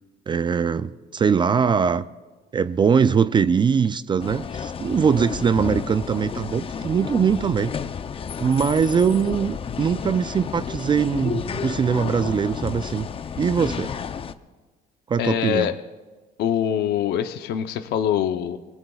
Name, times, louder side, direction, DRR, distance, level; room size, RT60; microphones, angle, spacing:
voice 1, 0.3-2.0 2.5-7.7 8.4-13.1 13.4-13.9 15.1-15.7, right 6 dB, 30° right, 0.4 m, -21 dB
sound 1, 4.2-14.3, left 6 dB, 35° left, 0.6 m, -31 dB
voice 2, 15.2-15.8 16.4-18.6, left 9 dB, 75° left, 0.7 m, -24 dB
29.0 x 18.5 x 2.4 m
cardioid pair, 110°, 17 cm